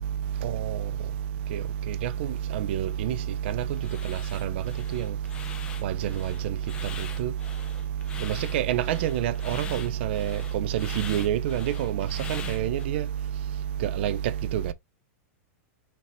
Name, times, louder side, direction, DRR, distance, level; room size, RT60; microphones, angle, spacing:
voice 1, 0.0-14.7, right 10 dB, 45° right, 0.5 m, -28 dB
sound 1, 3.8-12.9, left 6 dB, 10° left, 0.7 m, -43 dB
5.9 x 2.9 x 3.1 m
supercardioid pair, 180°, 8 cm